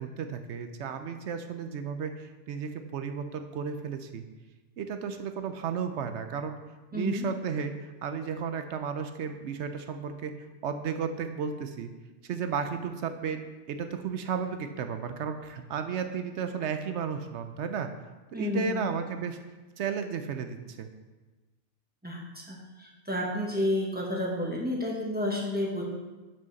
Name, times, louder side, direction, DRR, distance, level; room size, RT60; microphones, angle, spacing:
voice 1, 0.0-4.3 4.8-6.5 6.9-10.3 10.6-11.9 12.2-17.9 18.3-19.4 19.8-20.9, right 6 dB, 65° right, 8 dB, 0.8 m, -33 dB
voice 2, 6.9-7.3 18.3-18.9 22.0-25.8, left 1 dB, 5° right, -3 dB, 1.2 m, -31 dB
7.8 x 5.7 x 4.0 m, 1.2 s
omnidirectional pair, 1.5 m